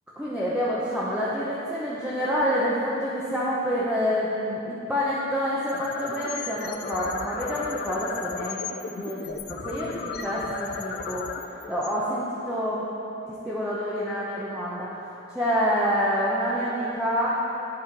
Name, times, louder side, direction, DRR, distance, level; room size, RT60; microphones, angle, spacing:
voice 1, 0.2-11.3 11.7-12.9 13.3-14.9 15.3-17.4, equal, 5° right, -8 dB, 0.7 m, -27 dB
sound 1, 5.7-12.6, left 5 dB, 55° left, 0.4 m, -35 dB
10.5 x 4.3 x 4.5 m, 2.9 s
head